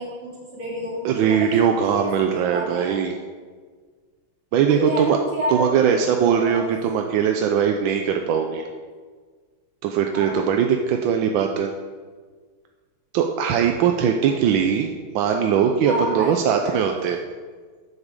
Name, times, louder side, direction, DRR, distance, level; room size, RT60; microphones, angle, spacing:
voice 1, 0.0-1.6 1.9-3.0 4.7-6.6 10.1-10.4 14.2-14.5 15.8-16.7, equal, 50° right, -7 dB, 3.8 m, -30 dB
voice 2, 1.0-3.2 4.5-5.2 5.5-8.7 9.8-11.7 13.1-14.9 15.1-17.2, right 7 dB, 75° right, 4 dB, 1.3 m, -20 dB
8.3 x 7.4 x 6.6 m, 1.6 s
omnidirectional pair, 2.4 m